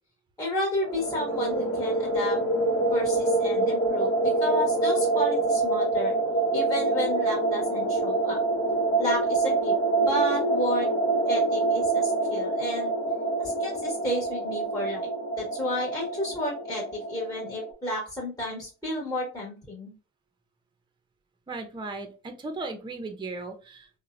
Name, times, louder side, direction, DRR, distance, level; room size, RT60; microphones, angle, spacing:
voice 1, 0.4-2.4 2.9-4.1 4.4-6.2 6.5-8.4 9.0-9.7 10.1-10.9 11.3-12.9 13.4-15.1 15.4-19.9, equal, 10° left, -4 dB, 1.1 m, -32 dB
sound 1, 0.8-17.7, right 2 dB, 45° left, 0.8 m, -26 dB
voice 2, 21.5-23.9, right 3 dB, 15° right, 6 dB, 0.5 m, -36 dB
2.8 x 2.1 x 2.4 m, 0.34 s
cardioid pair, 90°, 30 cm